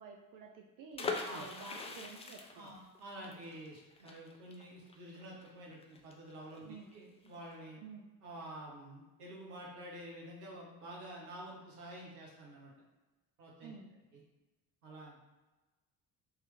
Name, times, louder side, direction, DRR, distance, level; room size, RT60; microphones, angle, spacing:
voice 1, 0.0-2.7 6.6-6.9 7.8-8.1 13.6-13.9, right 5 dB, 45° right, 2 dB, 0.6 m, -51 dB
sound 1, 0.9-6.6 6.9-7.0 7.2-7.5, left 4 dB, 15° left, 0.3 m, -42 dB
voice 2, 2.5-7.8 8.2-12.7 13.4-13.7 14.1-14.2 14.8-15.2, right 1 dB, 75° right, -3 dB, 1.1 m, -49 dB
3.7 x 3.0 x 3.3 m, 1.1 s
figure-of-eight pair, 50°, 46 cm